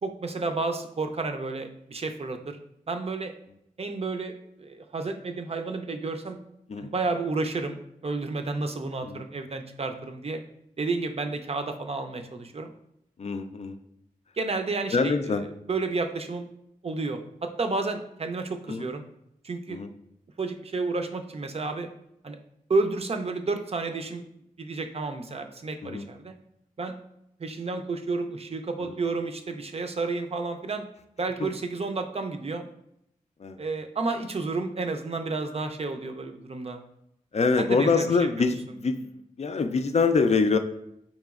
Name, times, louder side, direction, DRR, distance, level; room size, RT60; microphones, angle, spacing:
voice 1, 0.0-2.6 2.9-3.3 3.8-6.4 6.8-7.8 8.0-10.4 10.8-12.7 14.4-15.4 15.7-16.5 16.8-19.0 19.4-19.8 20.4-21.9 22.2-22.4 22.7-24.2 24.6-26.3 26.8-27.0 27.4-30.9 31.2-32.7 33.6-36.8 37.6-38.5, right 3 dB, 45° right, 6 dB, 0.5 m, -31 dB
voice 2, 13.2-13.8 14.9-15.4 18.7-18.9 19.7-19.9 25.8-26.1 28.8-28.9 31.4-31.5 33.4-33.6 37.3-39.1 39.4-40.6, left 4 dB, 50° left, 8 dB, 0.4 m, -25 dB
4.1 x 3.0 x 2.4 m, 0.79 s
cardioid pair, 45°, 14 cm